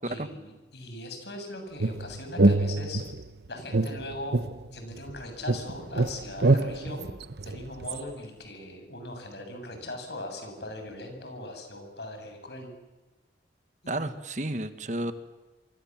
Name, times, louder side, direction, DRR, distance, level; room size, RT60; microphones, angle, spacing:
voice 1, 0.0-3.0 3.5-4.4 4.7-7.1 7.5-12.7 13.8-14.1, left 1 dB, 75° left, 5 dB, 7.4 m, -40 dB
sound 1, 1.8-3.3 3.7-5.2 5.5-8.0, right 2 dB, 70° right, 1.0 m, -25 dB
voice 2, 13.9-15.1, right 1 dB, 45° right, 10 dB, 1.5 m, -32 dB
27.5 x 24.5 x 7.5 m, 1.1 s
head